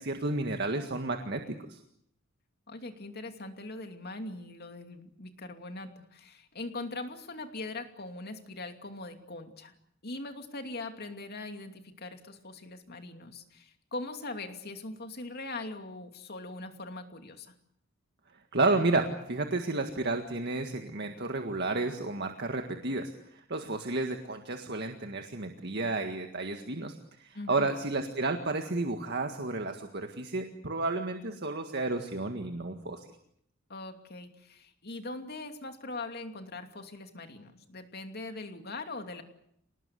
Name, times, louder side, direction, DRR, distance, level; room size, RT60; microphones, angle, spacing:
voice 1, 0.0-1.8 18.5-33.0, right 2 dB, 50° right, 5 dB, 1.8 m, -32 dB
voice 2, 2.7-9.7 10.0-17.5 27.3-27.7 33.7-39.2, left 2 dB, 50° left, 6 dB, 2.7 m, -41 dB
28.0 x 19.5 x 8.3 m, 0.72 s
head